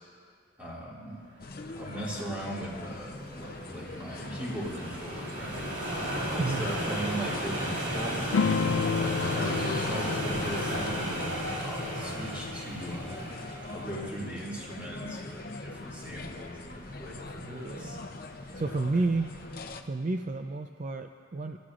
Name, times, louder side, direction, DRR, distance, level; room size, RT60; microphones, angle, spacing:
voice 1, 0.6-1.2 1.8-5.6 6.3-8.3 8.9-13.3 13.7-18.0, right 1 dB, 5° right, -6 dB, 2.3 m, -39 dB
sound 1, 1.4-19.8, left 3 dB, 50° left, 0.7 m, -43 dB
sound 2, 1.4-19.7, right 1 dB, 60° right, 2.7 m, -36 dB
voice 2, 6.4-6.7 17.4-18.0 18.5-19.3 19.8-21.6, right 3 dB, 40° right, 5 dB, 0.4 m, -31 dB
sound 3, 8.3-13.2, left 5 dB, 80° left, 0.4 m, -32 dB
28.5 x 13.5 x 2.5 m, 2.4 s
head